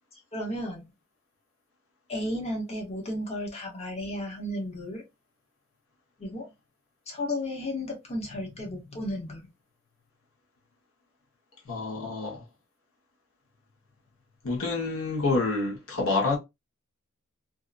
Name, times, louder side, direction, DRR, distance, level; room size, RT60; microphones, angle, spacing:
voice 1, 0.3-0.9 2.1-5.0 6.2-6.5 7.1-9.5, left 1 dB, 30° left, 0.9 m, -33 dB
voice 2, 11.7-12.4 14.4-16.4, left 3 dB, 75° left, 1.1 m, -27 dB
2.6 x 2.4 x 2.4 m
head